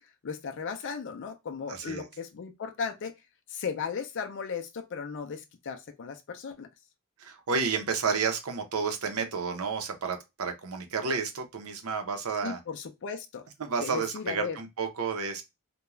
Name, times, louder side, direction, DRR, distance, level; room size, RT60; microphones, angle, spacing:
voice 1, 0.2-3.1 3.5-6.7 12.4-13.4 13.8-14.6, left 6 dB, 55° left, 0.4 m, -36 dB
voice 2, 1.7-2.1 7.2-12.6 13.6-15.4, right 5 dB, 75° right, 0.6 m, -31 dB
2.4 x 2.2 x 2.9 m
head